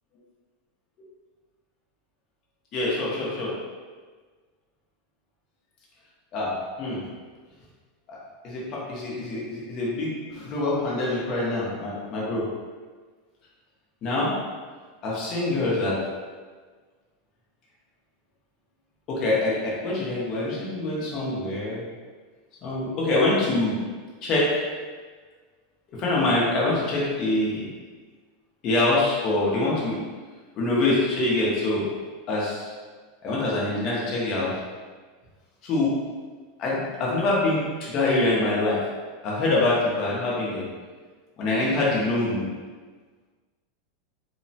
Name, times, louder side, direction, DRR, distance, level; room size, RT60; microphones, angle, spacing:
voice 1, 2.7-3.5 6.3-7.0 8.1-12.5 14.0-14.3 15.0-16.0 19.1-21.8 22.6-23.8 24.2-24.6 25.9-27.7 28.6-30.0 30.6-31.9 32.3-32.7 33.2-34.5 35.6-35.9 36.6-38.9 39.2-40.6 41.4-42.5, left 2 dB, 25° left, -5 dB, 0.6 m, -25 dB
2.9 x 2.0 x 2.7 m, 1.5 s
supercardioid pair, 180°, 0 cm